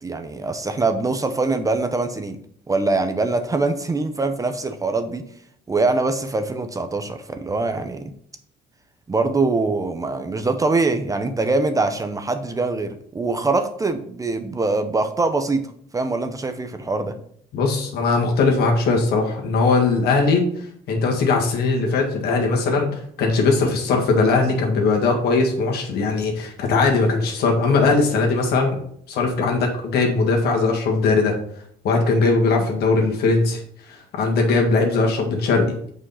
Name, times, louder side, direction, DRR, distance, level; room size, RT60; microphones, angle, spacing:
voice 1, 0.0-2.4 2.7-5.3 5.7-8.1 9.1-15.7 15.9-17.2, right 3 dB, 20° right, 7 dB, 0.7 m, -23 dB
voice 2, 17.5-20.4 20.9-28.8 29.1-31.4 31.8-33.6 33.9-35.7, left 3 dB, 70° left, 1 dB, 1.8 m, -20 dB
6.4 x 5.1 x 5.6 m, 0.65 s
cardioid pair, 110°, 17 cm